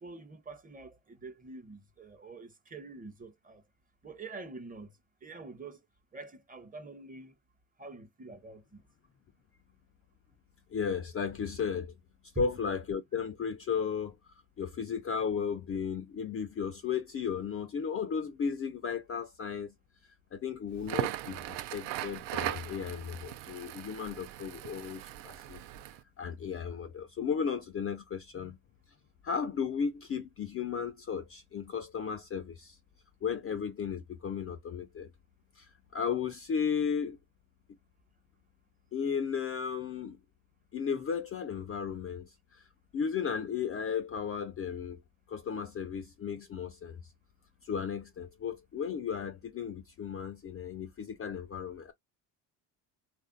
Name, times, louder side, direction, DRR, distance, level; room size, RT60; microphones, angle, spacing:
voice 1, 0.0-3.6 4.0-5.8 6.1-7.3 7.8-8.8 12.3-12.5 28.3-28.5, right 3 dB, 15° right, 0.7 m, -46 dB
voice 2, 10.7-11.9 12.3-14.2 14.6-19.7 20.3-21.4 21.7-25.6 26.2-28.6 29.2-32.8 33.2-35.1 35.6-37.2 38.9-40.2 40.7-42.7 42.9-45.0 45.3-47.0 47.6-51.9, left 6 dB, 30° left, 0.4 m, -35 dB
Crackle, 20.8-26.0, right 14 dB, 60° right, 0.5 m, -38 dB
3.3 x 2.5 x 2.4 m
supercardioid pair, 70°, 49 cm